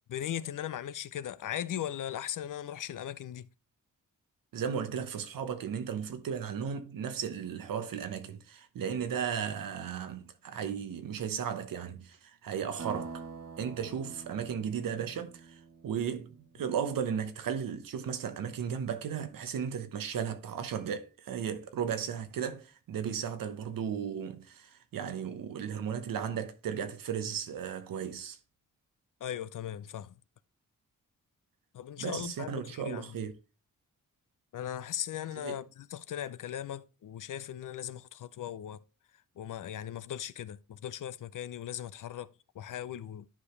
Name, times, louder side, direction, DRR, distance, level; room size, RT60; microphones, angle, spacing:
voice 1, 0.1-3.5 29.2-30.1 31.7-33.1 34.5-38.8 39.4-43.3, left 10 dB, 70° left, 0.6 m, -38 dB
voice 2, 4.5-13.2 13.6-28.4 32.0-33.3 35.4-35.6, right 7 dB, 90° right, 1.0 m, -35 dB
sound 1, 12.8-16.6, right 4 dB, 50° right, 1.2 m, -45 dB
11.0 x 4.9 x 3.2 m
cardioid pair, 80°, 33 cm